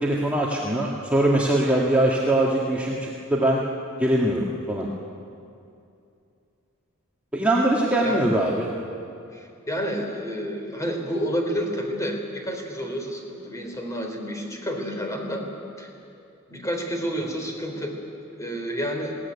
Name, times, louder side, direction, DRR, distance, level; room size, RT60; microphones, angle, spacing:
voice 1, 0.0-3.6 4.0-4.9 7.3-8.7, right 1 dB, 5° right, -4 dB, 1.8 m, -22 dB
voice 2, 9.3-15.4 15.8-15.9 16.5-17.9 18.4-19.1, equal, 15° left, 2 dB, 3.5 m, -29 dB
21.0 x 17.5 x 9.7 m, 2.6 s
head